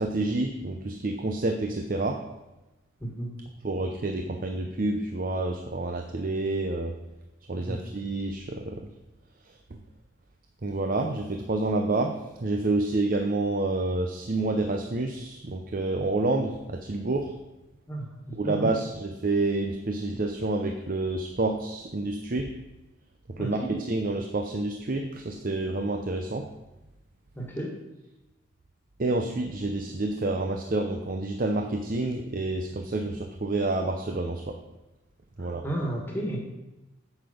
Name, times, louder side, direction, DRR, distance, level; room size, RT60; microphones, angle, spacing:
voice 1, 0.0-2.2 3.6-6.9 7.5-8.8 10.6-17.3 18.3-22.5 23.4-26.5 29.0-34.6 35.4-35.6, right 2 dB, 45° right, 5 dB, 0.7 m, -28 dB
voice 2, 17.9-18.7 23.4-23.7 27.4-27.7 35.6-36.4, right 1 dB, 10° left, 0 dB, 1.8 m, -33 dB
8.1 x 7.9 x 5.3 m, 1.0 s
head